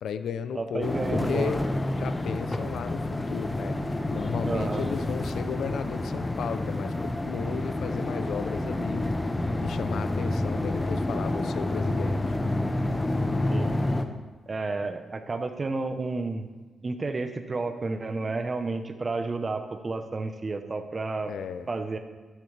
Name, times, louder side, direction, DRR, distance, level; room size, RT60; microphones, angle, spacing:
voice 1, 0.0-1.7 2.0-3.8 4.1-9.1 9.6-12.4 21.3-21.7, left 7 dB, 80° left, 11 dB, 0.5 m, -34 dB
voice 2, 0.5-1.5 4.5-4.9 13.5-13.7 14.5-16.5 16.8-21.3 21.7-22.0, right 3 dB, 35° right, 7 dB, 1.0 m, -31 dB
sound 1, 0.8-14.1, left 1 dB, 15° left, 0.8 m, -29 dB
11.5 x 11.0 x 3.4 m, 1.3 s
cardioid pair, 95°, 0 cm